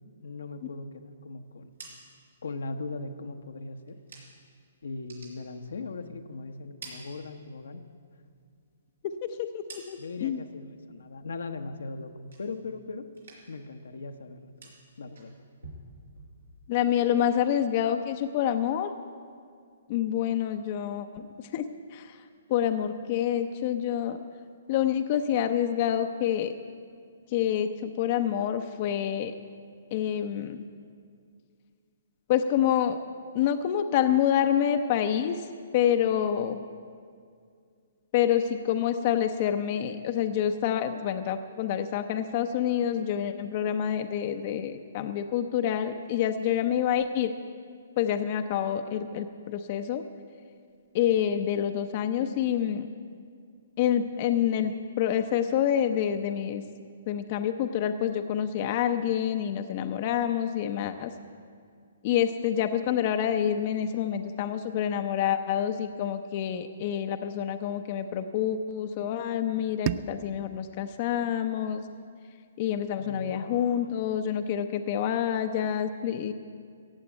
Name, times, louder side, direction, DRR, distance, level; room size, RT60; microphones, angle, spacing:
voice 1, 0.2-1.7 2.4-4.0 4.8-7.8 10.0-13.1 13.5-14.7 15.0-15.3 73.0-73.9, left 3 dB, 80° left, 6 dB, 1.0 m, -39 dB
sound 1, 1.5-4.6 4.9-6.2 6.5-7.8 8.2-10.3 10.7-11.2 11.5-12.8 13.1-13.7 14.0-16.8, right 3 dB, 90° right, 4.3 m, -51 dB
voice 2, 9.0-10.4 16.7-18.9 19.9-22.2 22.5-24.2 24.7-26.5 27.3-29.3 29.9-30.7 32.3-33.0 33.3-35.5 35.7-36.6 38.1-47.3 48.0-50.0 50.9-52.9 53.8-56.6 57.1-61.1 62.0-71.8 72.6-76.3, left 9 dB, 40° left, 8 dB, 0.6 m, -27 dB
sound 2, 69.8-72.8, right 12 dB, 35° right, 0.4 m, -38 dB
15.5 x 7.9 x 8.8 m, 2.2 s
hypercardioid pair, 140°, 0 cm